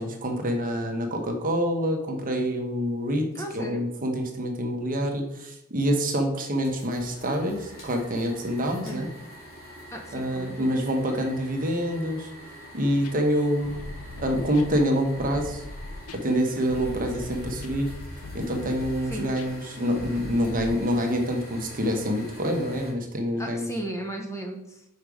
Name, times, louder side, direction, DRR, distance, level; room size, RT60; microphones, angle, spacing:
voice 1, 0.0-3.3 3.5-9.1 10.1-12.3 12.7-13.8 14.2-15.6 16.1-17.9 18.3-23.7, equal, 40° right, 3 dB, 1.0 m, -26 dB
voice 2, 3.3-3.8 8.8-9.0 9.9-10.7 19.1-19.3 23.4-24.9, right 1 dB, 15° left, 2 dB, 0.9 m, -35 dB
sound 1, 6.6-22.9, equal, 45° left, 2.5 m, -45 dB
sound 2, 13.0-20.8, left 2 dB, 70° left, 0.6 m, -40 dB
5.3 x 5.1 x 4.8 m, 0.82 s
head